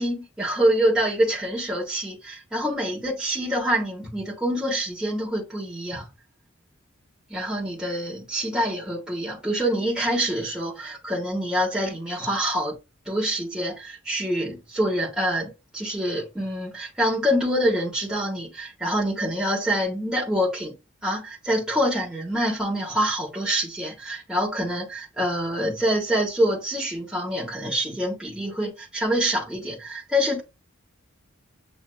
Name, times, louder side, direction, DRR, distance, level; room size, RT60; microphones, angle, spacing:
voice 1, 0.0-6.1 7.3-12.7 13.0-20.7 21.0-30.4, equal, 5° right, 1.4 m, -26 dB
7.6 x 2.8 x 2.2 m
head